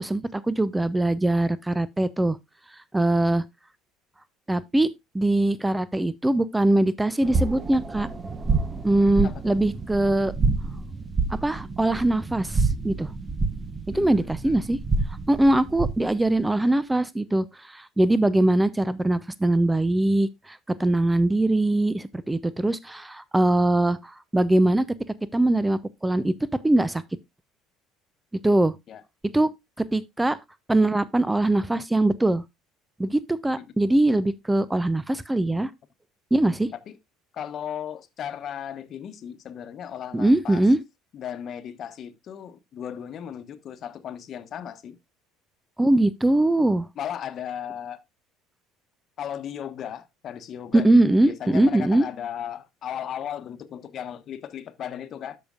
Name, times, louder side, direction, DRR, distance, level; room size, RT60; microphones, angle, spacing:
voice 1, 0.0-2.4 2.9-3.4 4.5-4.9 5.1-8.1 8.8-10.3 11.4-13.1 13.9-14.8 15.3-24.9 25.3-26.3 26.6-27.0 28.4-28.7 29.3-29.5 29.8-30.4 30.7-32.4 33.0-35.7 36.3-36.7 40.1-40.8 45.8-46.9 50.7-52.1, right 1 dB, 10° right, 0.6 m, -22 dB
sound 1, 7.2-16.1, right 3 dB, 30° right, 1.1 m, -28 dB
voice 2, 9.2-9.6 13.9-14.6 28.9-29.0 33.5-33.7 36.9-37.0 37.3-40.6 41.1-45.0 47.0-48.0 49.2-51.0 51.2-55.4, left 9 dB, 50° left, 1.1 m, -36 dB
13.0 x 5.2 x 2.4 m
hypercardioid pair, 65°, 0 cm